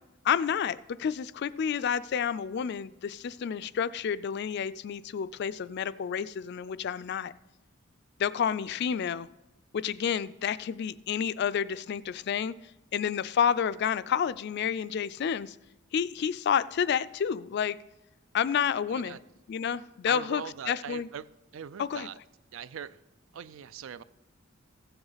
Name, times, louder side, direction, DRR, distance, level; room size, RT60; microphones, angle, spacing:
voice 1, 0.2-7.3 8.2-9.3 9.7-12.5 12.9-15.6 15.9-17.8 18.3-19.2 19.5-21.1 21.8-22.1, left 8 dB, 55° left, 0.3 m, -29 dB
voice 2, 18.9-19.2 20.1-21.3 21.5-22.2 22.5-23.0 23.3-24.0, right 7 dB, 80° right, 0.4 m, -41 dB
15.0 x 7.9 x 4.0 m
head